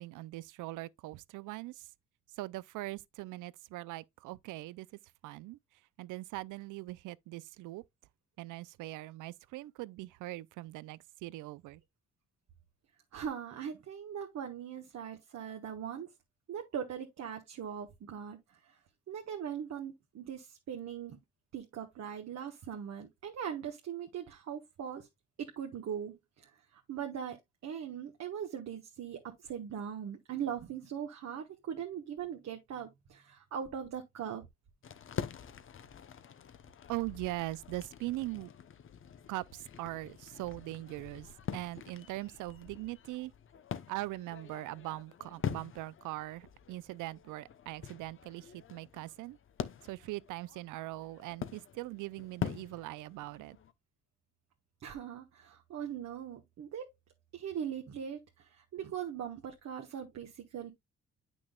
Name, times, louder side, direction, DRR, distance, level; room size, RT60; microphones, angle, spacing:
voice 1, 0.0-1.9 2.4-4.9 5.2-5.6 6.0-7.8 8.4-11.8 36.9-38.5 39.3-43.3 43.9-49.4 49.8-53.6, right 18 dB, 85° right, 0.5 m, -41 dB
voice 2, 13.1-16.1 16.5-18.4 19.1-21.2 21.5-25.1 25.4-26.1 26.9-27.4 27.6-34.4 54.8-56.9 57.3-58.2 58.7-60.7, right 8 dB, 60° right, 1.3 m, -40 dB
sound 1, 34.8-53.7, left 8 dB, 45° left, 0.7 m, -44 dB
8.7 x 6.1 x 2.3 m
cardioid pair, 90°, 30 cm